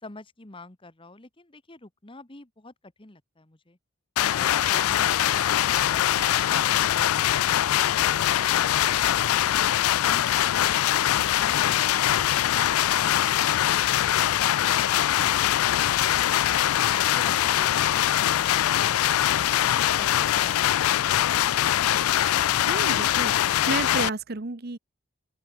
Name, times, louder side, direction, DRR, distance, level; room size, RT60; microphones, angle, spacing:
voice 1, 0.0-3.8 20.0-21.0, left 2 dB, 25° left, 1.3 m, -48 dB
sound 1, 4.2-24.1, left 12 dB, 90° left, 0.4 m, -23 dB
voice 2, 22.6-24.8, right 3 dB, 50° right, 1.1 m, -31 dB
open air
head